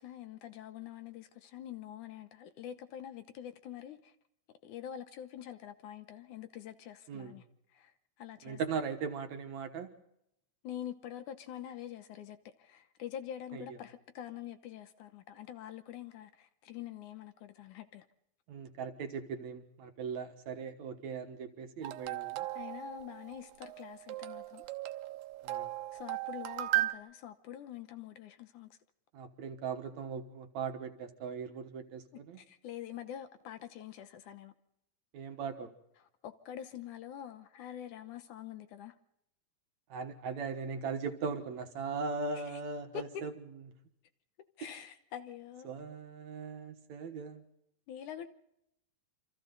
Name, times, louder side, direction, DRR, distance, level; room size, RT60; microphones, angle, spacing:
voice 1, 0.0-4.1 4.6-7.4 7.7-7.9 8.2-8.6 10.6-18.1 22.6-24.6 25.9-28.7 32.4-34.5 36.2-39.0 42.5-42.6 42.9-43.2 44.6-45.7 47.9-48.3, left 10 dB, 70° left, 2.3 m, -45 dB
voice 2, 8.4-9.9 13.5-13.8 18.5-22.5 25.4-25.7 29.1-32.4 35.1-35.7 39.9-43.3 44.6-44.8 45.6-47.4, right 5 dB, 60° right, 2.4 m, -39 dB
sound 1, 21.8-26.9, right 18 dB, 80° right, 2.8 m, -37 dB
28.0 x 26.0 x 4.0 m
omnidirectional pair, 4.0 m